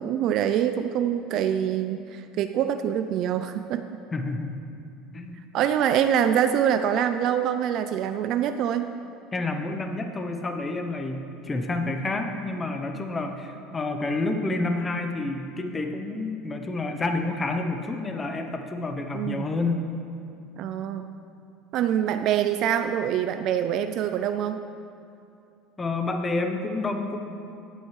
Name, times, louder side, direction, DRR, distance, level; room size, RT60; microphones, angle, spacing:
voice 1, 0.0-4.0 5.5-8.9 19.1-19.5 20.6-21.1 21.7-24.6, right 9 dB, 50° right, 9 dB, 0.3 m, -25 dB
voice 2, 4.1-4.6 5.1-5.4 9.3-19.8 25.8-27.2, left 2 dB, 15° left, 5 dB, 0.7 m, -29 dB
17.0 x 7.4 x 3.2 m, 2.6 s
cardioid pair, 145°, 0 cm